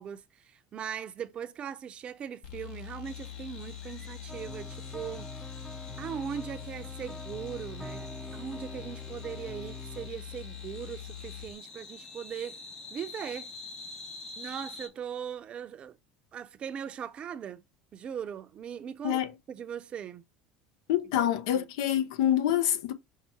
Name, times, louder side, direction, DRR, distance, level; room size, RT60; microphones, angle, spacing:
voice 1, 0.0-5.3 6.0-12.6 12.9-13.5 14.4-16.0 16.3-17.6 17.9-19.2 19.5-20.2 21.5-21.7, right 8 dB, 40° right, 0.5 m, -39 dB
sound 1, 2.4-11.5, left 11 dB, 65° left, 1.1 m, -43 dB
sound 2, 3.0-14.9, left 3 dB, 30° left, 1.4 m, -48 dB
sound 3, 4.3-10.1, right 1 dB, 10° left, 0.5 m, -45 dB
voice 2, 20.9-22.9, left 11 dB, 85° left, 0.5 m, -26 dB
5.6 x 2.2 x 4.1 m
supercardioid pair, 95°, 3 cm